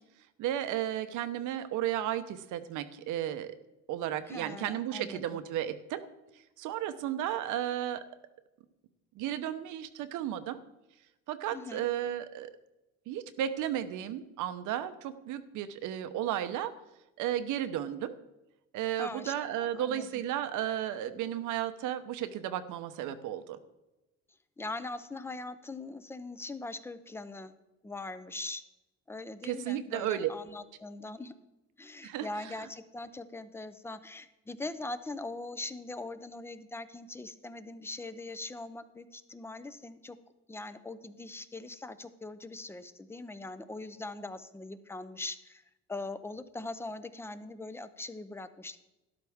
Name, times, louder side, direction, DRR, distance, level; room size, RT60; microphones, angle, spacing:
voice 1, 0.4-3.6 3.9-6.0 6.3-8.0 9.1-10.6 11.3-12.5 13.1-16.7 17.2-18.1 18.7-23.6 29.4-30.3 32.0-32.7, right 11 dB, 80° right, 11 dB, 0.9 m, -34 dB
voice 2, 4.3-5.2 11.5-11.9 19.0-20.1 24.6-27.5 27.8-28.6 29.1-31.3 31.8-40.2 40.5-45.6 45.9-48.8, left 2 dB, 10° left, 13 dB, 0.5 m, -41 dB
12.5 x 11.5 x 3.5 m, 1.0 s
cardioid pair, 125°, 30 cm